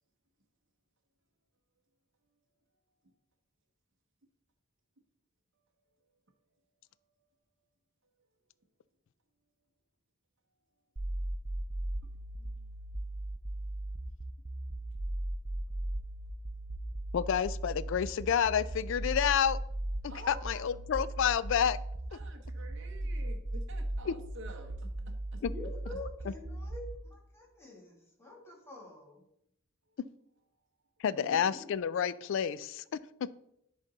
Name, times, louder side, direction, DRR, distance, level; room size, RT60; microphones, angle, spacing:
sound 1, 11.0-27.0, right 1 dB, 20° right, 0.4 m, -37 dB
voice 1, 12.3-12.6 20.1-20.6 22.1-25.4 25.9-26.0, right 2 dB, 60° right, 3 dB, 0.8 m, -50 dB
voice 2, 17.1-19.6 20.0-21.8 24.1-24.2 25.4-25.5 26.3-26.4 31.0-33.3, left 8 dB, 65° left, 17 dB, 0.3 m, -30 dB
voice 3, 25.4-29.2 31.1-31.7, left 3 dB, 10° left, -2 dB, 2.0 m, -47 dB
10.5 x 4.0 x 3.9 m, 0.76 s
head